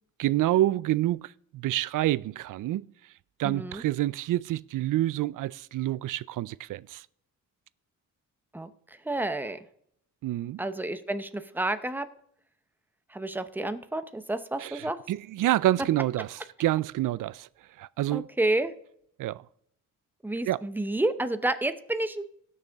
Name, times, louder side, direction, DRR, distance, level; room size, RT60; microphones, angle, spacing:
voice 1, 0.2-2.9 3.4-7.0 10.2-10.6 14.6-17.5 17.8-18.3 19.2-19.4 20.5-20.6, right 14 dB, 70° right, 0.5 m, -28 dB
voice 2, 3.4-3.8 8.5-9.7 10.6-12.1 13.1-15.0 18.1-18.7 20.2-22.3, right 2 dB, 5° right, 0.7 m, -30 dB
18.0 x 6.6 x 3.5 m
cardioid pair, 110°, 33 cm